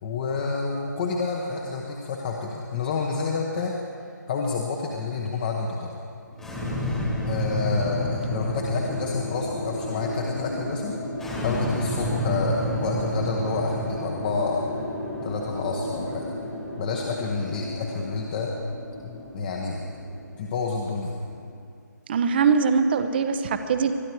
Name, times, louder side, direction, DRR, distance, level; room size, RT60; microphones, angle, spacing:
voice 1, 0.0-3.7 4.3-6.0 7.2-10.9 11.4-14.6 15.2-16.3 16.8-18.5 19.0-19.9 20.4-21.1, left 4 dB, 25° left, 0 dB, 1.1 m, -29 dB
sound 1, 6.3-21.6, equal, 5° left, 1.6 m, -31 dB
voice 2, 22.1-23.9, right 5 dB, 30° right, 9 dB, 0.8 m, -22 dB
22.0 x 12.0 x 4.6 m, 2.3 s
figure-of-eight pair, 155°, 10 cm